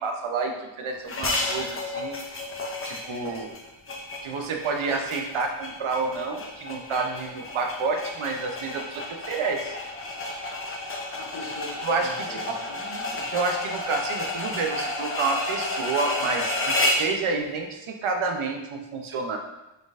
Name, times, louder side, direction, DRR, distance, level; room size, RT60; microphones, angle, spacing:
voice 1, 0.0-2.2 2.8-3.5 4.2-9.8 11.8-12.4 13.3-19.4, right 4 dB, 80° right, 3 dB, 0.6 m, -29 dB
sound 1, 1.1-17.1, left 2 dB, 30° left, 0.4 m, -31 dB
voice 2, 3.0-3.4 11.1-13.3, equal, 55° left, -8 dB, 1.5 m, -42 dB
3.9 x 3.8 x 2.4 m, 0.96 s
wide cardioid pair, 175°, 48 cm